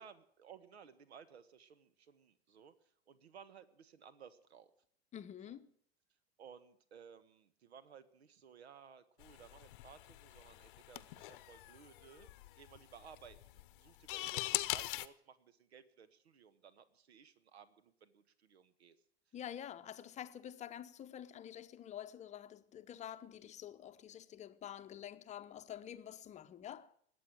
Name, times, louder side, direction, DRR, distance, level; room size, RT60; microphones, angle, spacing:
voice 1, 0.0-2.7 3.1-4.7 5.4-5.6 6.4-12.3 12.5-19.0, right 7 dB, 65° right, 1.5 m, -58 dB
voice 2, 5.1-5.7 19.3-26.9, left 10 dB, 20° left, 0.9 m, -48 dB
sound 1, 9.2-15.1, left 18 dB, 45° left, 0.9 m, -42 dB
20.5 x 8.5 x 7.5 m
figure-of-eight pair, 90°, 34 cm